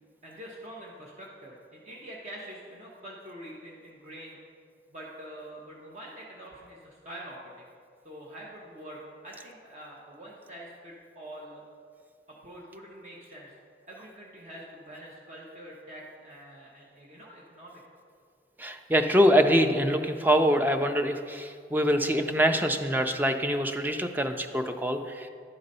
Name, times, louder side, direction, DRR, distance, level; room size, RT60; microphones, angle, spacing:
voice 1, 0.2-4.4 4.9-7.7 8.0-11.6 12.3-13.5 13.9-17.8, right 1 dB, 40° right, -4 dB, 0.9 m, -45 dB
voice 2, 18.6-25.3, equal, 10° right, 6 dB, 0.4 m, -24 dB
11.0 x 3.9 x 5.4 m, 2.2 s
head